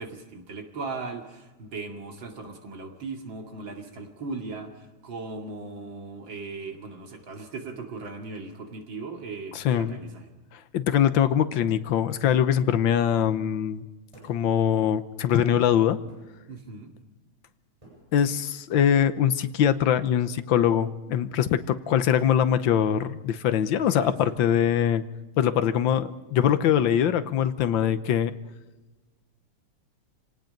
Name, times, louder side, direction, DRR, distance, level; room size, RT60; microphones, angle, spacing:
voice 1, 0.0-10.3 16.5-16.9 23.8-24.3, right 3 dB, 70° right, 3 dB, 3.1 m, -38 dB
voice 2, 9.5-10.0 10.5-13.8 14.2-16.0 18.1-25.0 25.4-28.3, left 9 dB, 75° left, 12 dB, 1.6 m, -23 dB
sound 1, 12.1-12.6 14.1-14.7 16.1-16.6 17.8-18.4 19.9-20.9, right 1 dB, 15° right, 7.9 m, -53 dB
27.0 x 18.0 x 5.3 m, 1.2 s
omnidirectional pair, 2.2 m